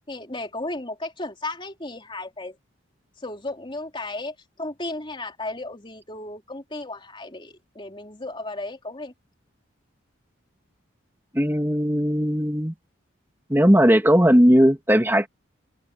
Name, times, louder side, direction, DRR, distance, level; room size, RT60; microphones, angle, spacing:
voice 1, 0.1-2.6 3.2-9.1, left 2 dB, 25° left, 3.5 m, -34 dB
voice 2, 11.3-12.7 13.5-15.3, equal, 10° right, 2.3 m, -18 dB
open air
head